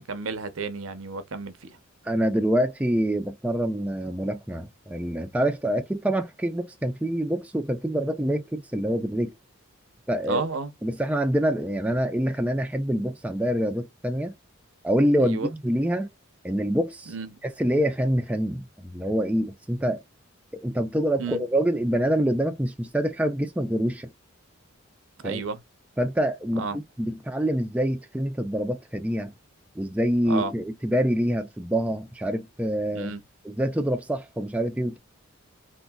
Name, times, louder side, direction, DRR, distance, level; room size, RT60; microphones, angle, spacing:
voice 1, 0.1-1.7 10.3-10.7 15.2-15.5 17.1-17.4 21.2-21.4 25.2-25.6 26.5-26.8 30.3-30.5 32.9-33.2, right 4 dB, 75° right, 0.7 m, -31 dB
voice 2, 2.0-9.3 10.1-10.5 10.8-14.3 14.8-16.1 16.4-17.1 17.4-20.0 20.6-24.1 25.2-25.4 26.0-29.3 29.8-33.1 33.4-35.0, equal, 5° right, 0.3 m, -26 dB
3.7 x 2.5 x 2.2 m
head